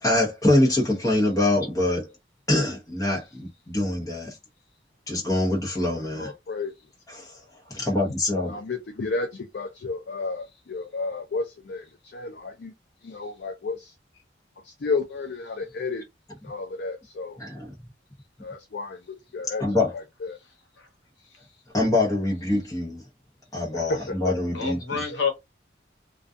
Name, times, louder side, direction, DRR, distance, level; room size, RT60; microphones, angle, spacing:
voice 1, 0.0-2.1 2.5-4.3 5.1-6.3 7.1-7.3 7.7-8.6 17.4-17.7 19.6-19.9 21.7-23.0 23.5-24.8, left 1 dB, 20° left, 0.8 m, -24 dB
voice 2, 5.8-6.7 7.9-8.1 8.4-12.7 13.0-13.9 14.6-16.0 16.4-17.4 18.4-19.6 19.9-20.4 23.7-24.4, left 3 dB, 60° left, 0.4 m, -32 dB
voice 3, 24.5-25.3, left 5 dB, 80° left, 1.0 m, -30 dB
2.4 x 2.3 x 2.5 m
head